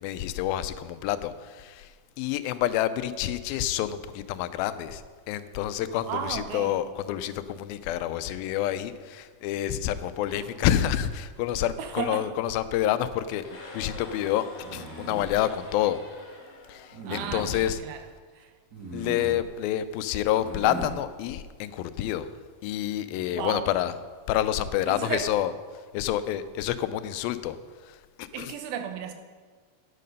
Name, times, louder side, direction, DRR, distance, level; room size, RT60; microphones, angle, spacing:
voice 1, 0.0-1.8 2.2-5.0 5.3-13.4 13.7-14.5 14.7-16.0 16.7-16.8 17.1-17.8 18.9-22.3 22.6-24.0 24.3-25.5 25.9-27.6 28.2-28.5, left 12 dB, 90° left, 13 dB, 2.4 m, -28 dB
voice 2, 6.1-6.8 10.3-10.4 11.8-12.3 17.1-18.0 18.4-18.5 23.3-23.7 24.9-25.3 28.3-29.1, right 8 dB, 90° right, 6 dB, 2.8 m, -34 dB
sound 1, 13.4-17.5, left 2 dB, 60° left, 3.8 m, -46 dB
sound 2, 14.6-15.3 16.9-17.6 18.7-19.4 20.3-20.9, right 3 dB, 35° right, 1.7 m, -38 dB
10.5 x 9.3 x 5.3 m, 1.5 s
omnidirectional pair, 4.1 m